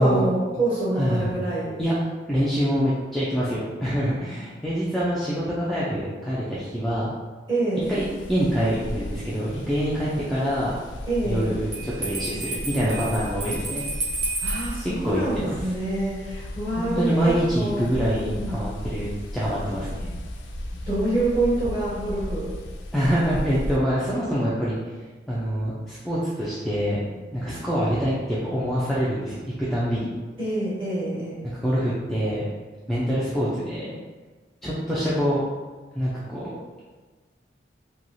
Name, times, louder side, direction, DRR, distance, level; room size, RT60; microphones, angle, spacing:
voice 1, 0.0-1.8 7.5-7.9 11.1-11.5 14.4-17.1 17.5-17.8 18.2-18.5 20.9-22.5 30.4-31.4, right 2 dB, 30° right, -11 dB, 1.4 m, -26 dB
voice 2, 0.9-1.4 1.8-1.9 2.3-7.1 7.9-10.8 11.2-13.9 14.8-15.7 16.8-20.1 22.9-24.8 25.3-29.4 29.7-30.1 31.4-32.5 32.9-34.0 34.6-35.4 35.9-36.6, equal, ahead, -9 dB, 0.3 m, -25 dB
sound 1, 7.8-23.8, left 1 dB, 90° left, 0.4 m, -35 dB
Bell, 11.7-14.8, right 2 dB, 60° right, 0.8 m, -31 dB
3.0 x 2.3 x 2.6 m, 1.3 s
head